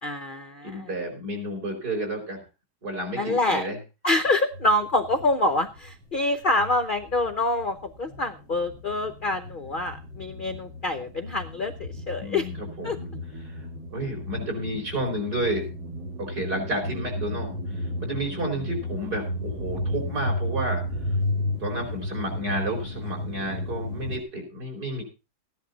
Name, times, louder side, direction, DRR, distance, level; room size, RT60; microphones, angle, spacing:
voice 1, 0.0-0.9 3.2-3.6 4.0-12.5 12.8-13.0, left 2 dB, 65° left, 9 dB, 0.5 m, -26 dB
voice 2, 0.6-2.4 2.8-3.8 12.2-13.1 13.4-13.6 13.9-15.7 16.2-20.8 21.6-25.0, right 1 dB, 50° right, 0 dB, 5.3 m, -31 dB
sound 1, 4.5-6.2 6.4-24.2, left 1 dB, 75° right, 2.9 m, -34 dB
15.0 x 10.5 x 4.0 m, 0.30 s
omnidirectional pair, 2.1 m